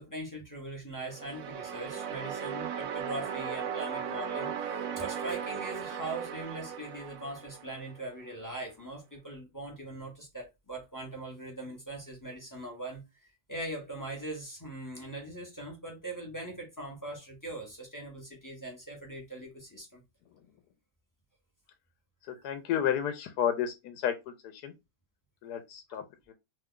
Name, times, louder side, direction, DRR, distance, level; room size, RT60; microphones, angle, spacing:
voice 1, 0.0-20.0 22.3-22.4, right 2 dB, 25° left, 0.4 m, -41 dB
sound 1, 1.0-8.1, right 8 dB, 65° right, 0.9 m, -37 dB
voice 2, 22.4-24.1 24.6-24.7 25.4-26.0 26.3-26.4, left 9 dB, 75° left, 1.1 m, -31 dB
3.0 x 2.2 x 3.6 m
omnidirectional pair, 1.8 m